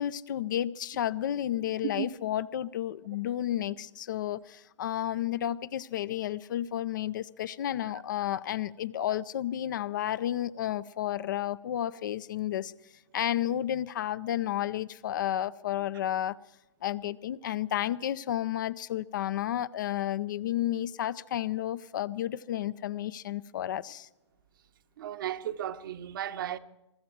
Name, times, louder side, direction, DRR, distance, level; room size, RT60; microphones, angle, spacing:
voice 1, 0.0-12.7 13.1-16.4 16.8-24.1, left 12 dB, 40° left, 0.5 m, -32 dB
voice 2, 25.0-26.6, right 10 dB, 45° right, 0.9 m, -35 dB
23.0 x 13.5 x 4.5 m
figure-of-eight pair, 120°, 15 cm